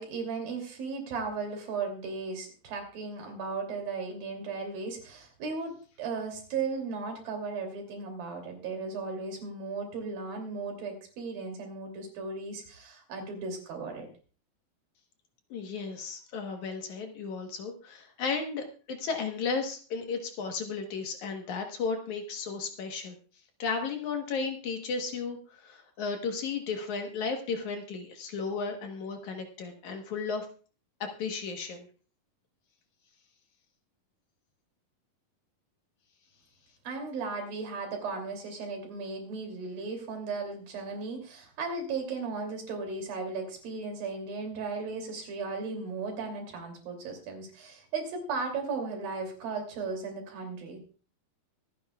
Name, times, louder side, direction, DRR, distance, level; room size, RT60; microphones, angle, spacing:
voice 1, 0.0-14.1 36.8-50.8, right 4 dB, 75° right, 3 dB, 4.6 m, -36 dB
voice 2, 15.5-23.2 23.6-30.5 31.0-31.9, left 5 dB, 65° left, 4 dB, 2.4 m, -34 dB
24.5 x 9.4 x 2.3 m, 0.38 s
omnidirectional pair, 4.1 m